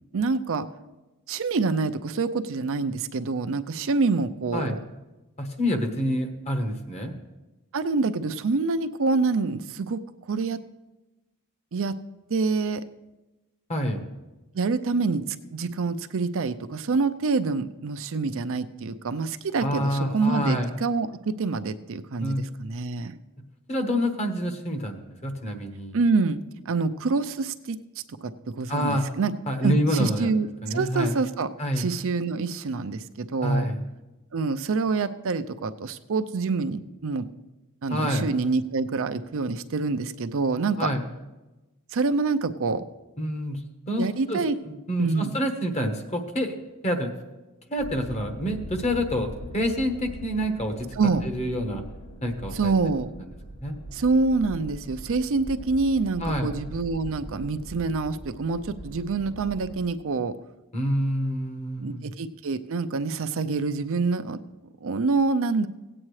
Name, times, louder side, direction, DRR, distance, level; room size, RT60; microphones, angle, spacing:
voice 1, 0.1-0.7 1.3-4.8 7.7-10.0 10.3-10.6 11.7-11.9 12.3-12.8 14.5-15.2 15.5-23.2 25.9-26.4 26.7-27.8 28.6-29.3 29.6-31.5 31.8-33.7 34.3-37.3 37.8-40.9 41.9-42.8 44.0-44.6 45.0-45.3 50.9-51.2 52.5-53.1 53.9-60.3 61.8-64.4 64.8-65.7, right 4 dB, 60° right, 11 dB, 0.5 m, -26 dB
voice 2, 5.4-7.2 13.7-14.0 19.6-20.7 22.2-22.4 23.7-26.0 28.7-29.1 29.5-30.3 30.6-31.1 31.6-31.9 33.4-33.8 37.9-38.3 40.8-41.0 43.2-43.6 43.9-44.4 44.7-47.1 47.7-50.9 51.2-51.8 52.2-52.7 53.6-53.7 56.2-56.5 60.7-62.1, equal, 30° left, 5 dB, 1.1 m, -27 dB
sound 1, 47.8-59.8, equal, 65° left, 2.8 m, -41 dB
17.0 x 8.7 x 3.2 m, 1.1 s
head